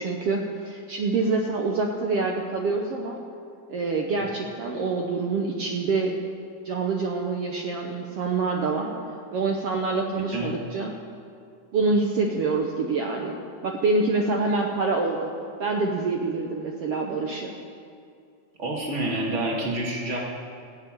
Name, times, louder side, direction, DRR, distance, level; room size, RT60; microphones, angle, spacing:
voice 1, 0.0-3.2 3.7-6.2 6.6-8.9 9.3-10.9 11.7-13.3 13.6-15.3 15.6-17.5, right 3 dB, 70° right, 1 dB, 1.4 m, -26 dB
voice 2, 10.2-10.5 18.6-20.2, right 1 dB, 25° right, -2 dB, 1.8 m, -28 dB
16.0 x 6.6 x 8.9 m, 2.5 s
omnidirectional pair, 3.9 m